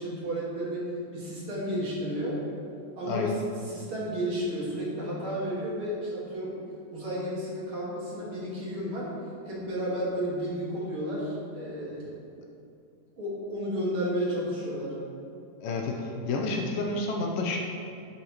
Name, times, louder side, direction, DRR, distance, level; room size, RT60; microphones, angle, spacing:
voice 1, 0.0-2.4 3.0-3.3 3.7-6.5 6.9-9.1 9.5-12.1 13.2-14.9, equal, 40° right, -7 dB, 2.5 m, -32 dB
voice 2, 15.6-17.6, left 3 dB, 75° left, 0 dB, 2.4 m, -30 dB
10.5 x 9.2 x 3.2 m, 2.5 s
omnidirectional pair, 4.3 m